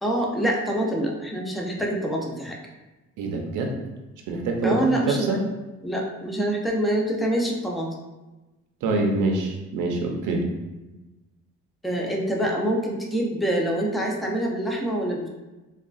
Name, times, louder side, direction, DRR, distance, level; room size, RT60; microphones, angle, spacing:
voice 1, 0.0-2.6 4.6-5.4 5.8-7.9 11.8-15.3, right 1 dB, ahead, -1 dB, 0.5 m, -25 dB
voice 2, 3.2-3.7 4.3-5.4 8.8-10.5, right 3 dB, 90° right, 2 dB, 0.6 m, -25 dB
3.6 x 2.3 x 2.3 m, 1.1 s
cardioid pair, 90°, 30 cm